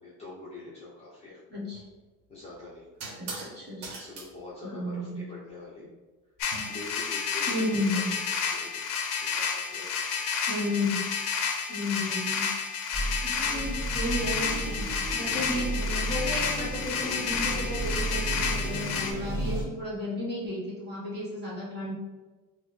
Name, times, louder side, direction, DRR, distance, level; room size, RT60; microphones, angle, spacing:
voice 1, 0.0-1.4 2.3-2.9 3.9-5.9 6.7-8.0 8.5-8.9 9.3-10.1 18.7-19.0, left 3 dB, 15° left, -8 dB, 0.7 m, -45 dB
voice 2, 1.5-1.8 3.2-3.9 4.6-5.2 7.5-8.1 10.5-11.1 11.7-12.5 13.2-21.9, left 1 dB, 25° right, -6 dB, 1.3 m, -33 dB
sound 1, 1.7-1.9 3.0-3.5 3.8-4.3 6.4-7.0, right 3 dB, 65° right, 0.9 m, -40 dB
sound 2, 6.4-19.1, left 6 dB, 55° left, 0.7 m, -31 dB
sound 3, 12.9-19.6, right 1 dB, 10° right, 1.4 m, -33 dB
3.6 x 2.1 x 3.2 m, 1.2 s
supercardioid pair, 120°, 38 cm